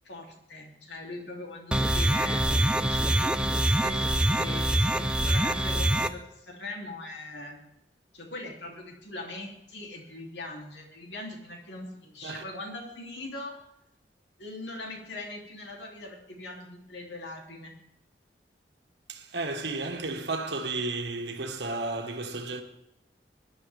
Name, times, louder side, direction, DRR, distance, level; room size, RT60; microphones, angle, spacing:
voice 1, 0.0-7.6 8.1-13.5 14.4-17.7, left 2 dB, 85° left, 3.4 m, -41 dB
sound 1, 1.7-6.1, right 1 dB, 5° right, 0.6 m, -25 dB
voice 2, 19.1-22.6, right 3 dB, 75° right, 1.7 m, -33 dB
20.5 x 11.0 x 3.6 m
head